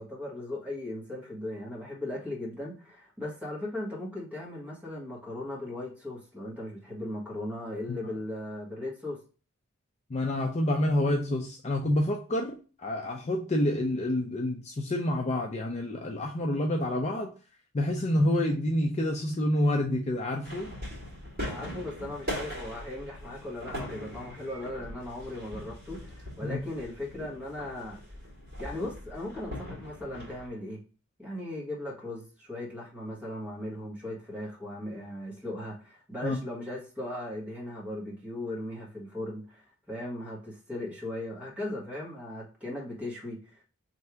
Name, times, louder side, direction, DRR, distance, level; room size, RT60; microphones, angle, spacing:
voice 1, 0.0-9.2 21.5-28.0 28.6-30.8 31.2-43.6, left 1 dB, 5° right, -5 dB, 1.3 m, -38 dB
voice 2, 10.1-17.3 17.7-20.7 26.4-26.6 36.2-36.4, left 1 dB, 30° left, 1 dB, 0.4 m, -28 dB
sound 1, 20.4-30.5, equal, 45° right, 1.9 m, -41 dB
3.3 x 2.7 x 4.5 m, 0.36 s
head